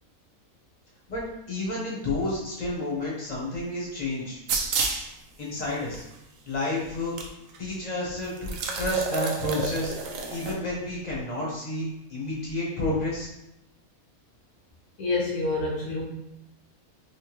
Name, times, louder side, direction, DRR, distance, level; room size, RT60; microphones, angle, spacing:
voice 1, 1.1-4.4 5.4-6.0 6.4-7.1 7.6-9.9 10.3-13.3, left 2 dB, 30° left, -5 dB, 1.1 m, -30 dB
sound 1, 4.5-5.1 5.9-6.0 7.2-7.3 7.5-7.6 8.4-10.5, right 4 dB, 70° right, 0.9 m, -29 dB
voice 2, 15.0-16.0, left 3 dB, 90° left, -3 dB, 1.4 m, -27 dB
3.6 x 3.1 x 3.0 m, 0.88 s
omnidirectional pair, 1.5 m